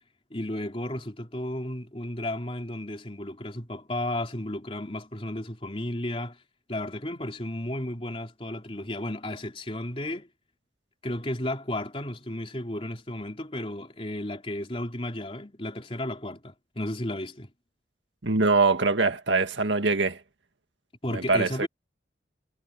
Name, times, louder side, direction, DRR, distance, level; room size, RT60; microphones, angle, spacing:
voice 1, 0.3-6.4 6.7-10.3 11.0-17.5 21.0-21.7, left 1 dB, 30° left, 3.6 m, -33 dB
voice 2, 18.2-20.2 21.1-21.7, right 3 dB, 80° right, 1.9 m, -23 dB
head